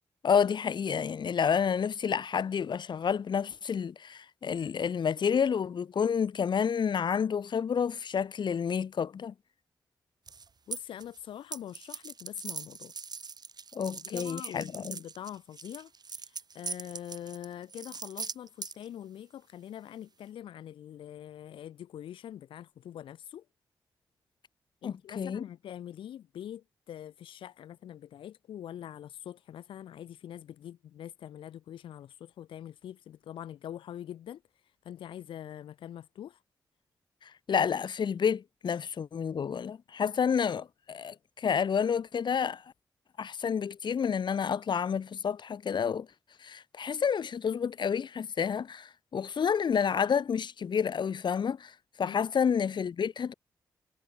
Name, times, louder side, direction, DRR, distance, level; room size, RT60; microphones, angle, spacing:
voice 1, 0.2-9.3 13.7-15.0 24.8-25.4 37.5-42.6 43.2-46.1 46.4-51.7 52.0-53.3, left 7 dB, 65° left, 1.2 m, -29 dB
sound 1, 10.3-11.2 11.5-18.9, right 5 dB, 55° right, 6.2 m, -41 dB
voice 2, 10.7-12.9 13.9-23.4 24.8-34.4 34.8-36.4 52.0-52.2, left 10 dB, 90° left, 7.0 m, -44 dB
cardioid pair, 55°, 8 cm